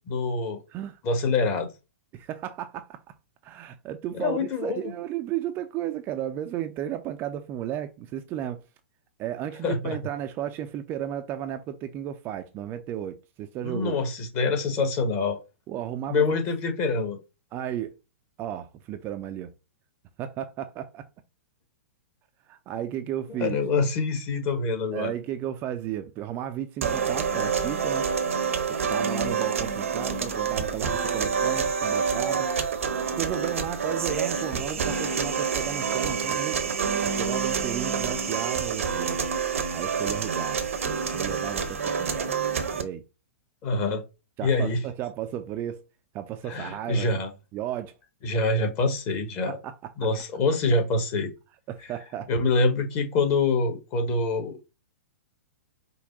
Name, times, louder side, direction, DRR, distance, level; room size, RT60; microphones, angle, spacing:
voice 1, 0.1-0.6 1.0-1.7 4.1-4.9 9.6-10.0 13.6-15.4 16.1-17.2 23.3-25.1 43.6-44.0 44.4-44.8 46.5-47.3 48.2-49.6 50.0-51.3 52.3-54.6, left 3 dB, 30° left, 1.3 m, -25 dB
voice 2, 2.1-3.0 3.4-8.6 9.2-14.0 15.7-16.3 17.5-18.0 18.4-19.5 20.2-21.1 22.5-23.6 24.9-28.1 28.7-32.5 33.2-36.7 37.0-39.2 39.7-40.6 41.1-42.3 42.8-43.0 44.4-45.8 46.1-47.1 47.5-47.9 49.5-49.7 51.7-52.3, right 11 dB, 30° right, 0.5 m, -34 dB
sound 1, 26.8-42.8, right 6 dB, 65° right, 0.9 m, -27 dB
5.3 x 2.2 x 3.8 m
figure-of-eight pair, 110°, 8 cm